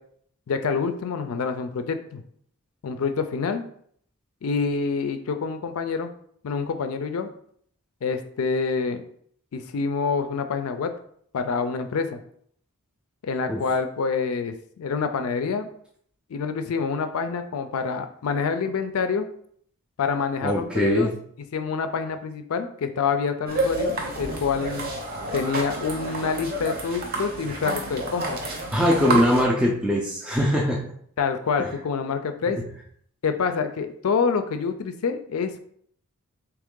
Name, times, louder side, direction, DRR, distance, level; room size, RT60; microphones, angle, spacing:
voice 1, 0.5-2.2 2.8-3.6 4.4-6.1 6.4-7.3 8.0-9.0 9.5-10.9 11.3-12.2 13.2-15.7 16.3-19.3 20.0-21.1 21.5-24.9 25.3-28.4 29.1-29.2 31.2-32.6 33.2-35.6, left 5 dB, 70° left, 8 dB, 0.4 m, -27 dB
voice 2, 20.4-21.1 28.7-30.9 32.5-32.6, equal, 5° right, -3 dB, 0.4 m, -22 dB
sound 1, 23.5-29.4, right 2 dB, 40° right, 0.8 m, -29 dB
3.5 x 3.0 x 3.7 m, 0.63 s
head